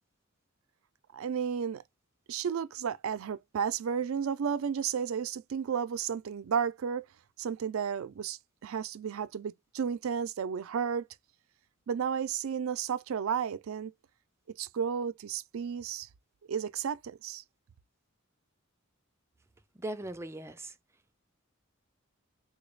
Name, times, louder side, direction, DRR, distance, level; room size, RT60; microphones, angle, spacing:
voice 1, 1.1-1.8 2.3-7.1 7.4-11.1 11.9-13.9 14.6-16.1 16.5-17.4, right 7 dB, 75° right, 0.4 m, -33 dB
voice 2, 19.8-20.7, right 1 dB, 15° right, 0.4 m, -38 dB
3.8 x 2.2 x 3.1 m
head